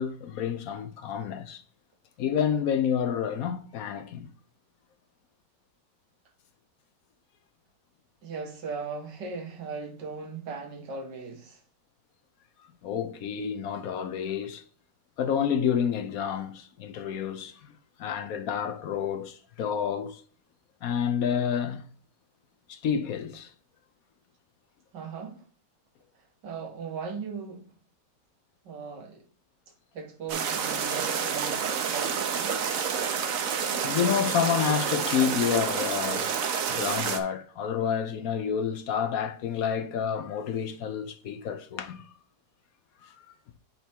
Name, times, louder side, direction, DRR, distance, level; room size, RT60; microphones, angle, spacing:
voice 1, 0.0-1.6 2.2-4.3 12.8-14.6 15.2-17.7 18.0-20.2 20.8-21.8 22.7-23.5 33.0-36.3 36.7-42.0 43.0-43.2, left 8 dB, 60° left, 1.0 m, -29 dB
voice 2, 8.2-11.6 24.9-25.4 26.4-27.7 28.6-29.3 29.9-32.6, right 5 dB, 75° right, 2.1 m, -38 dB
sound 1, 30.3-37.2, right 7 dB, 55° right, 1.1 m, -29 dB
8.1 x 3.5 x 4.4 m
omnidirectional pair, 1.9 m